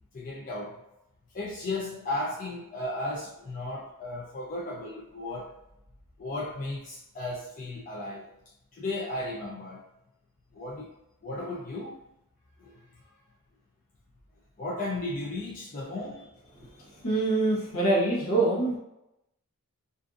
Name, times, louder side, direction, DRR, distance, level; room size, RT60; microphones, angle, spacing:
voice 1, 0.1-0.8 1.3-5.5 6.2-8.3 8.7-9.8 10.5-10.9 11.2-12.0 12.6-12.8 14.6-16.2, left 2 dB, 35° left, -5 dB, 0.4 m, -35 dB
voice 2, 16.5-18.8, right 2 dB, 65° left, -4 dB, 0.9 m, -25 dB
2.5 x 2.4 x 2.4 m, 0.88 s
head